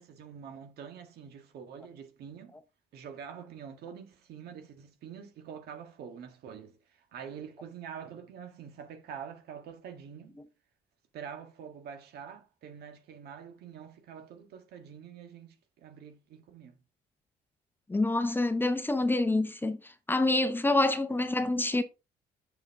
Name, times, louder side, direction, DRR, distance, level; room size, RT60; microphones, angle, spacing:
voice 1, 0.0-2.5 2.9-6.7 7.1-10.4 11.1-16.8 21.2-21.5, right 7 dB, 70° right, 1.7 m, -46 dB
voice 2, 17.9-21.8, left 2 dB, 10° left, 0.9 m, -27 dB
7.0 x 6.8 x 3.6 m
cardioid pair, 110°, 17 cm